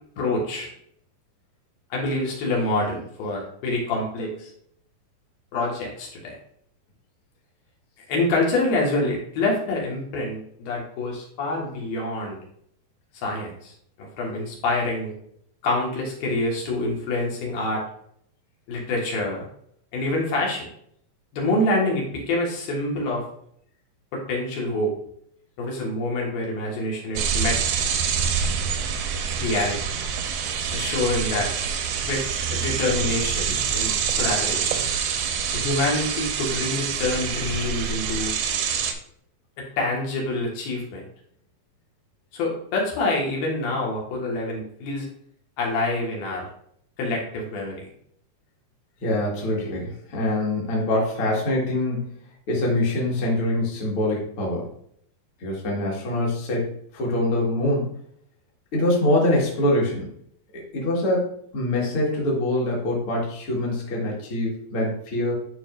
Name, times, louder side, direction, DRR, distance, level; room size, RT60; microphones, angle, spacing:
voice 1, 0.2-0.7 1.9-4.5 5.5-6.4 8.1-12.4 13.2-13.7 14.0-15.1 15.6-17.8 18.7-19.5 19.9-20.7 21.3-23.3 24.1-24.9 25.6-27.8 29.4-29.8 30.7-31.5 32.1-32.3 32.5-34.9 35.5-38.3 39.6-41.0 42.3-45.1 45.6-46.5 47.0-47.9, left 2 dB, 80° left, -2 dB, 3.4 m, -26 dB
sound 1, 27.2-38.9, right 7 dB, 80° right, 2.3 m, -26 dB
voice 2, 49.0-52.2 52.5-54.7 55.4-57.9 58.7-60.1 60.7-65.3, left 1 dB, 45° left, -3 dB, 2.1 m, -24 dB
11.5 x 4.7 x 2.5 m, 0.68 s
omnidirectional pair, 4.2 m